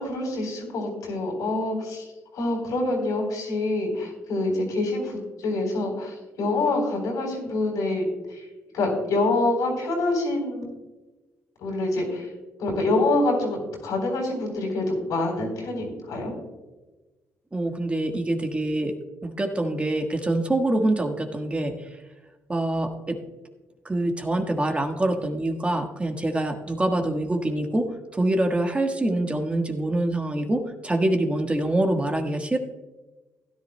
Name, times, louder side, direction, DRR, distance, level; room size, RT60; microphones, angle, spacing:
voice 1, 0.0-2.0 2.3-8.0 8.3-8.4 8.7-10.6 11.6-12.3 12.6-16.3, left 2 dB, 80° left, 1 dB, 3.8 m, -26 dB
voice 2, 17.5-19.0 19.2-21.7 22.5-23.2 23.8-32.6, right 1 dB, 20° right, 4 dB, 1.4 m, -25 dB
16.0 x 10.5 x 2.2 m, 1.2 s
cardioid pair, 85°, 6 cm